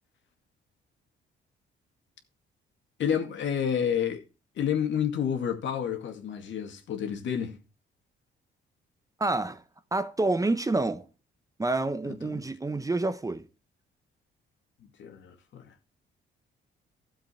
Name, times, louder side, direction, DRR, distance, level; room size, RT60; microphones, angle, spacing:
voice 1, 3.0-4.2 4.6-7.6 12.0-12.5 15.0-15.7, left 8 dB, 70° left, 2.2 m, -30 dB
voice 2, 9.2-9.6 9.9-11.0 11.6-13.4, right 2 dB, 15° right, 0.9 m, -28 dB
13.0 x 7.6 x 4.4 m
cardioid pair, 90°, 20 cm